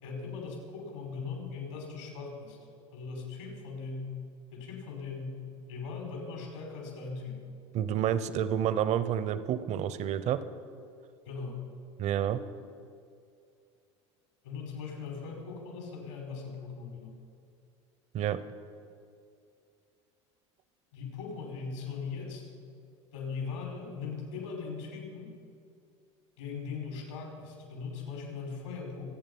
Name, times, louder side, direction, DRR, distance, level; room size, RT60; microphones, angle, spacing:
voice 1, 0.0-2.6 2.9-4.2 4.5-5.4 5.7-7.4 11.3-11.6 14.4-17.2 20.9-22.5 23.1-25.4 26.4-29.1, left 5 dB, 85° left, 0 dB, 4.9 m, -39 dB
voice 2, 7.7-10.4 12.0-12.4 18.1-18.4, right 10 dB, 50° right, 14 dB, 0.9 m, -29 dB
25.0 x 8.8 x 5.5 m, 2.4 s
hypercardioid pair, 90°, 15 cm